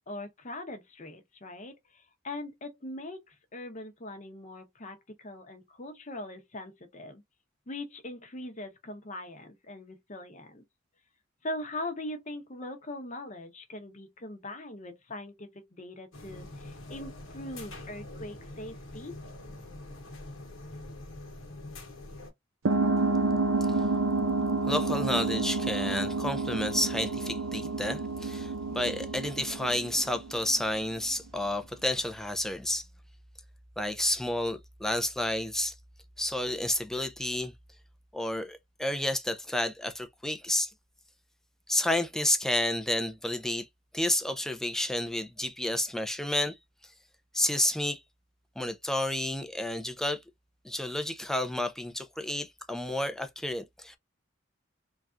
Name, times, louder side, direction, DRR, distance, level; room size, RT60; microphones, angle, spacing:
voice 1, 0.1-7.2 7.7-10.6 11.4-19.2, left 1 dB, 35° left, 0.7 m, -41 dB
sound 1, 16.1-22.3, left 2 dB, 70° left, 1.0 m, -44 dB
sound 2, 22.7-30.8, right 3 dB, 90° right, 0.6 m, -29 dB
voice 2, 24.7-32.9 33.8-35.7 36.2-37.5 38.1-40.7 41.7-43.7 43.9-46.5 47.3-48.0 48.6-50.2 50.6-54.0, left 1 dB, ahead, 0.3 m, -30 dB
3.3 x 2.3 x 2.5 m
head